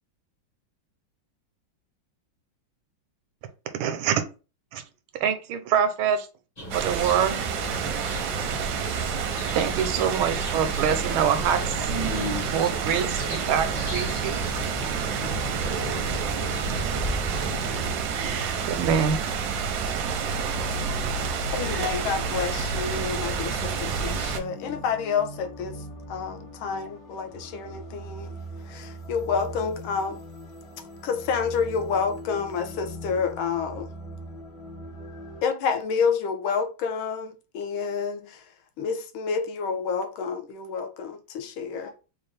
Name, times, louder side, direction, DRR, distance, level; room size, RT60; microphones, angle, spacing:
voice 1, 3.7-4.1 4.7-4.8 5.2-6.3 6.7-7.4 9.5-11.7 12.5-14.4 18.7-19.2, right 8 dB, 90° right, 1.5 m, -25 dB
sound 1, 6.6-17.8, right 1 dB, 35° left, 0.7 m, -35 dB
sound 2, 6.7-24.4, right 6 dB, 70° right, 0.9 m, -29 dB
voice 2, 11.8-12.5 13.8-14.5 41.7-41.9, right 1 dB, 30° right, 0.4 m, -34 dB
sound 3, 17.6-35.4, right 1 dB, 60° left, 1.7 m, -41 dB
voice 3, 21.5-28.3 28.7-30.2 31.0-33.9 35.4-38.4 38.8-41.9, left 6 dB, 85° left, 1.4 m, -29 dB
4.3 x 2.4 x 3.3 m
omnidirectional pair, 2.2 m